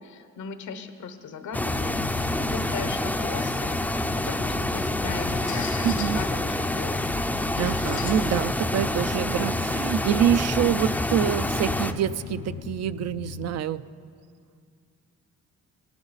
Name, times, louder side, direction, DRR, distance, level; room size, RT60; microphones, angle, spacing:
voice 1, 0.0-7.3 7.7-8.1, left 6 dB, 75° left, 9 dB, 1.0 m, -38 dB
sound 1, 1.5-13.6, left 8 dB, 50° left, 0.5 m, -39 dB
sound 2, 1.5-11.9, left 1 dB, 5° left, 0.5 m, -27 dB
sound 3, 3.9-11.0, left 5 dB, 90° left, 1.5 m, -41 dB
voice 2, 5.8-6.2 7.6-13.8, right 10 dB, 55° right, 13 dB, 0.5 m, -26 dB
17.5 x 11.5 x 4.0 m, 2.2 s
cardioid pair, 90°, 30 cm